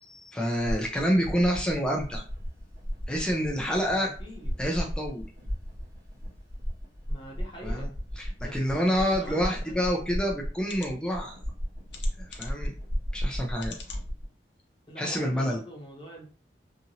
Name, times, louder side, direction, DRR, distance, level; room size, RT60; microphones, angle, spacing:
voice 1, 0.0-2.2 3.1-4.1 4.6-5.2 7.6-7.9 8.2-11.4 12.2-12.7 13.1-13.8 15.0-15.6, equal, 5° left, -1 dB, 0.4 m, -28 dB
sound 1, 0.6-14.3, equal, 55° right, 1.4 m, -35 dB
voice 2, 3.9-4.5 7.1-7.9 8.4-9.8 14.9-16.3, equal, 30° left, -1 dB, 0.9 m, -44 dB
sound 2, 10.6-10.9 11.9-12.7 13.6-14.0 14.6-14.7 15.0-15.1, left 6 dB, 75° left, 0.6 m, -44 dB
2.8 x 2.5 x 2.7 m, 0.38 s
head